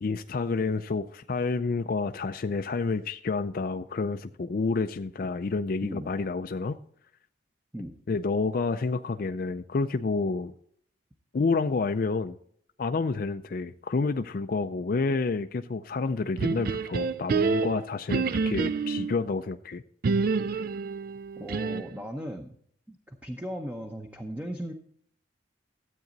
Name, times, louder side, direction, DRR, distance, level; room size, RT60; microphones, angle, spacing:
voice 1, 0.0-6.8 8.1-10.5 11.3-12.3 12.8-19.8, left 4 dB, 45° left, 8 dB, 0.4 m, -29 dB
sound 1, 16.4-19.2 20.0-22.0, right 4 dB, 50° right, 0.4 m, -28 dB
voice 2, 21.4-22.6 22.9-24.7, equal, 10° right, 4 dB, 0.7 m, -37 dB
13.5 x 8.3 x 3.9 m, 0.64 s
head